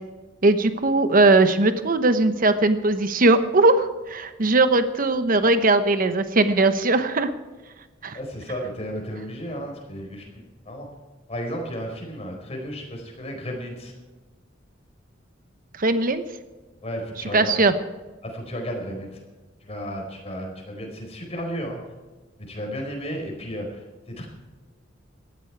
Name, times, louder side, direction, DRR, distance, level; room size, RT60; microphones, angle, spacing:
voice 1, 0.4-7.3 8.0-8.2 15.8-16.2 17.3-17.7, right 2 dB, 45° right, 10 dB, 1.0 m, -19 dB
voice 2, 8.1-10.9 11.3-13.9 16.8-17.6 18.2-19.2 19.6-21.8 22.4-24.3, equal, 30° left, 1 dB, 4.6 m, -33 dB
18.0 x 13.0 x 4.7 m, 1.3 s
head